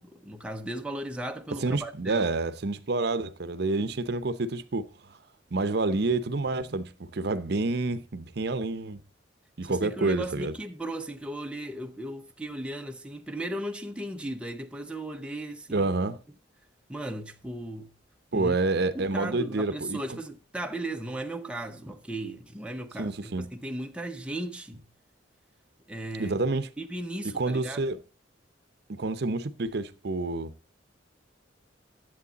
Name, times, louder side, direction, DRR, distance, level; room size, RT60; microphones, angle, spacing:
voice 1, 0.0-2.3 9.6-15.9 16.9-17.9 18.3-18.6 18.9-24.9 25.9-26.4 26.8-27.9, right 1 dB, 5° right, 0.6 m, -36 dB
voice 2, 1.6-4.9 5.5-9.0 9.6-10.5 15.7-16.2 18.3-20.0 23.0-23.5 26.2-26.7 27.3-28.0 28.9-30.5, right 3 dB, 60° right, 0.7 m, -28 dB
11.0 x 7.7 x 4.0 m
head